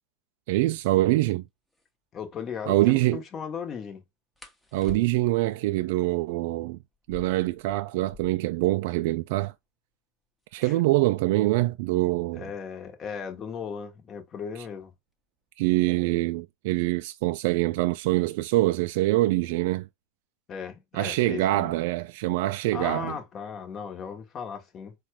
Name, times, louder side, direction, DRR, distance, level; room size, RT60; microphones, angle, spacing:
voice 1, 0.5-1.4 2.7-3.2 4.7-6.8 7.1-9.5 10.5-12.5 15.6-19.9 20.9-23.2, right 18 dB, 65° right, 0.3 m, -24 dB
sound 1, 1.7-1.9 4.4-5.5 6.9-8.6 8.9-9.0 9.2-9.8 10.4-13.0 14.0-14.3 14.7-15.1 15.5-16.2, left 1 dB, 10° left, 0.9 m, -48 dB
voice 2, 2.1-4.0 10.6-10.8 12.3-14.9 20.5-21.7 22.7-24.9, left 6 dB, 30° left, 1.1 m, -37 dB
4.1 x 2.3 x 4.6 m
hypercardioid pair, 115°, 0 cm